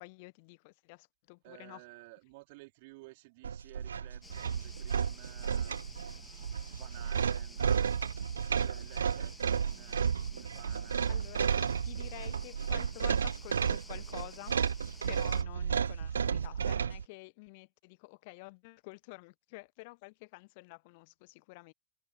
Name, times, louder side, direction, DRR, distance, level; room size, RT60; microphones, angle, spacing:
voice 1, 0.0-1.8 11.1-14.6 15.0-21.7, left 27 dB, 50° left, 1.2 m, -49 dB
voice 2, 1.4-6.3 6.7-7.9 8.5-11.1, right 24 dB, 50° right, 3.7 m, -54 dB
sound 1, 3.4-17.0, right 7 dB, 70° right, 0.3 m, -32 dB
sound 2, 4.2-15.4, left 3 dB, 10° left, 2.3 m, -54 dB
sound 3, 12.1-15.3, right 8 dB, 20° right, 6.0 m, -69 dB
figure-of-eight pair, 90°, 0 cm